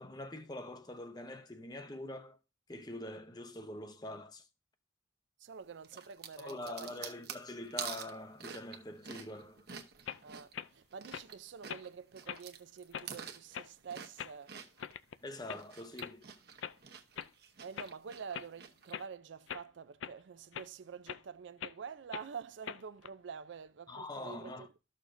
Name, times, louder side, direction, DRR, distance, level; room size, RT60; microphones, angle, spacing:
voice 1, 0.0-2.4 2.7-4.5 6.4-9.7 15.2-16.3 23.9-24.7, left 1 dB, 20° left, 0.7 m, -44 dB
voice 2, 5.4-7.1 10.2-14.5 17.6-24.8, right 6 dB, 70° right, 0.4 m, -47 dB
sound 1, 5.8-11.3 11.6-14.9 15.4-18.9, right 7 dB, 55° right, 0.9 m, -47 dB
sound 2, 10.1-10.2 10.5-10.7 11.1-11.3 11.7-11.9 12.3-12.4 12.9-13.1 13.5-13.7 14.2-14.4 14.8-15.2 15.5-15.6 16.0-16.1 16.6-16.8 17.2-17.3 17.7-17.9 18.3-18.5 18.9-19.1 19.5-19.6 20.0-20.1 20.5-20.7 21.1-21.2 21.6-21.7 22.1-22.3 22.6-23.1, left 9 dB, 75° left, 0.4 m, -42 dB
13.0 x 6.6 x 2.6 m
head